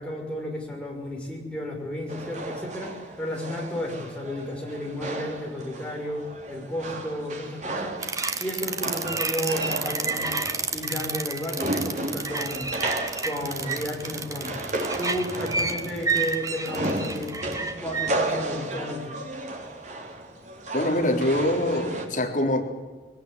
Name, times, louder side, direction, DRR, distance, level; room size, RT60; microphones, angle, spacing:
voice 1, 0.0-8.0 8.4-10.3 10.7-12.7 13.2-14.7 15.0-17.3 17.6-19.1, left 1 dB, 5° left, -1 dB, 6.0 m, -33 dB
sound 1, 2.1-22.1, right 1 dB, 40° right, 3.3 m, -34 dB
sound 2, 8.0-18.1, right 4 dB, 20° right, 1.4 m, -30 dB
voice 2, 20.7-22.6, left 1 dB, 45° left, 1 dB, 4.0 m, -24 dB
21.5 x 19.0 x 9.8 m, 1.3 s
head